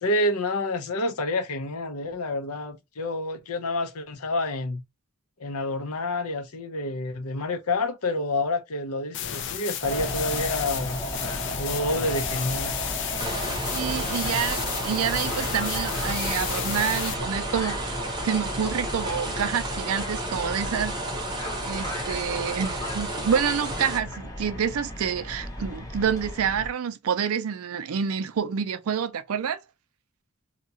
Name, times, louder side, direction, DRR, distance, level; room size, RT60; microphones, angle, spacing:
voice 1, 0.0-4.8 5.4-11.0 11.5-12.7, left 2 dB, 90° left, 0.7 m, -28 dB
sound 1, 9.1-17.1, left 9 dB, 55° left, 0.4 m, -33 dB
sound 2, 9.8-26.7, equal, 15° left, 0.6 m, -35 dB
sound 3, 13.2-24.0, right 1 dB, 20° right, 0.7 m, -32 dB
voice 2, 13.7-18.0 18.2-21.0 21.6-29.6, right 7 dB, 75° right, 0.4 m, -28 dB
2.8 x 2.3 x 2.7 m
head